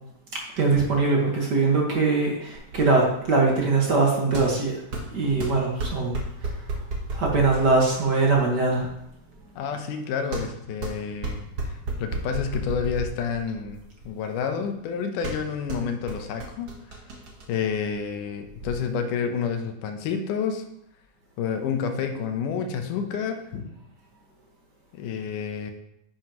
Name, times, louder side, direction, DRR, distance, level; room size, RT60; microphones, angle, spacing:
voice 1, 0.6-4.7 5.1-6.2 7.1-8.9, right 3 dB, 45° right, -2 dB, 1.5 m, -22 dB
sound 1, 2.5-18.7, right 2 dB, 60° right, 1.0 m, -35 dB
voice 2, 9.6-11.4 12.0-16.8 17.5-20.6 21.4-23.7 24.9-25.7, left 6 dB, 80° left, 5 dB, 2.4 m, -29 dB
10.0 x 7.8 x 3.0 m, 0.80 s
omnidirectional pair, 3.7 m